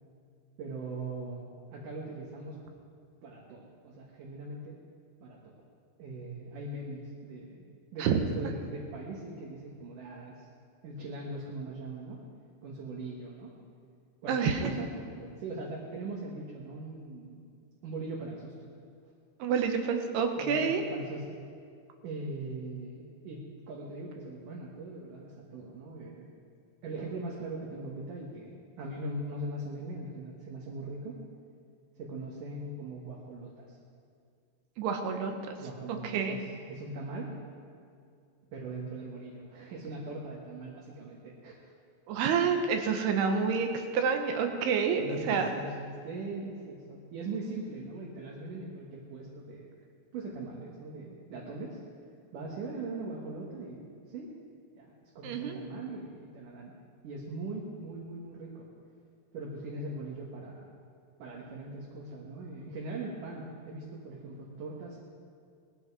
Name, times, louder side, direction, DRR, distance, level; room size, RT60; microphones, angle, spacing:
voice 1, 0.6-1.4 1.7-2.6 3.2-4.8 5.2-5.6 6.0-7.6 7.9-10.5 10.8-12.2 12.6-13.5 14.2-17.4 17.8-18.5 20.4-21.4 22.0-26.3 26.8-31.2 32.0-33.8 35.6-37.3 38.5-41.6 45.0-49.7 50.1-51.8 52.3-54.3 54.8-56.7 57.0-58.7 59.3-60.7 61.2-65.0, right 2 dB, 60° right, -3 dB, 2.9 m, -40 dB
voice 2, 14.3-14.6 19.4-20.8 34.8-35.6 36.1-36.3 42.1-43.7 43.9-45.5 55.2-55.6, right 6 dB, 90° right, 5 dB, 3.3 m, -28 dB
20.0 x 13.5 x 4.8 m, 2.3 s
omnidirectional pair, 4.5 m